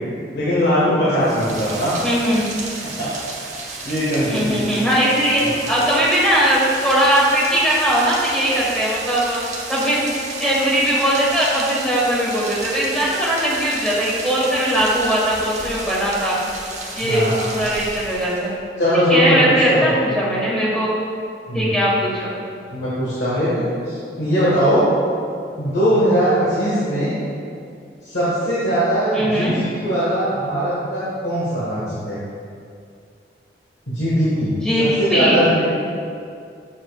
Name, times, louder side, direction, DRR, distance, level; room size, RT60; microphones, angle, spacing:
voice 1, 0.3-1.9 3.0-3.1 3.8-4.8 5.4-5.5 17.0-17.4 18.8-19.9 21.5-21.8 22.7-24.9 25.6-27.1 28.0-32.2 33.9-34.5 34.8-35.7, equal, 75° left, -10 dB, 1.4 m, -20 dB
Rain, 1.2-18.6, right 3 dB, 40° right, 0.8 m, -33 dB
voice 2, 2.0-2.5 4.2-5.4 5.7-9.4 9.7-10.0 10.4-16.4 16.9-17.3 17.5-18.5 19.1-20.9 21.5-22.3 29.1-29.5 34.6-35.5, equal, 5° left, -7 dB, 1.4 m, -19 dB
7.2 x 7.0 x 2.4 m, 2.4 s
head